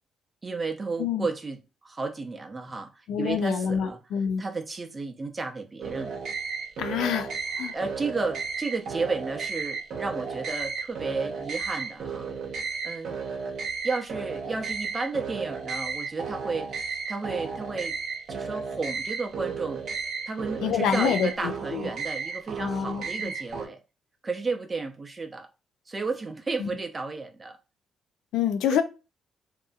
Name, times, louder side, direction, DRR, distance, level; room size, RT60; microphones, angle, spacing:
voice 1, 0.4-4.0 4.4-6.2 7.7-12.3 12.8-13.2 13.8-18.0 18.3-19.8 20.3-23.8 24.2-25.5 25.9-27.6 28.7-28.8, right 3 dB, 25° right, 0.6 m, -33 dB
voice 2, 3.1-4.4 6.8-7.3 7.6-7.7 20.6-21.9 22.6-23.0 26.6-26.7 28.3-28.8, left 8 dB, 85° left, 0.3 m, -27 dB
sound 1, 5.8-23.7, right 5 dB, 65° right, 0.7 m, -34 dB
2.7 x 2.5 x 2.3 m
cardioid pair, 90°, 0 cm